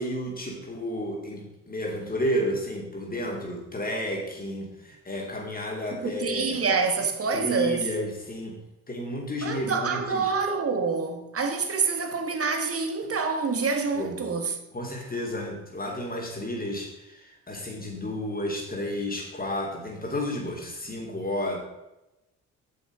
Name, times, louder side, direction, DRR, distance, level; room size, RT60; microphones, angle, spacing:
voice 1, 0.0-6.6 7.3-8.6 8.9-10.4 13.9-14.1 14.7-21.6, equal, 25° left, 3.4 m, -32 dB
voice 2, 6.0-7.9 9.4-14.6, right 4 dB, 40° right, 1.7 m, -27 dB
8.8 x 6.9 x 4.9 m
supercardioid pair, 60°, 35 cm